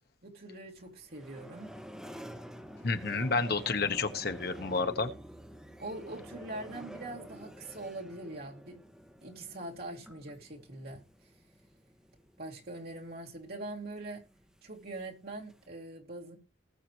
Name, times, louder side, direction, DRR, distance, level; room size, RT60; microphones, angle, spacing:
voice 1, 0.2-1.7 3.1-3.4 5.8-8.8 9.2-11.0 12.4-14.2 14.6-16.4, right 2 dB, 60° right, 2.7 m, -43 dB
sound 1, 0.8-15.7, equal, 5° right, 1.4 m, -50 dB
voice 2, 2.8-5.1, left 4 dB, 60° left, 1.1 m, -30 dB
19.5 x 6.6 x 3.1 m
head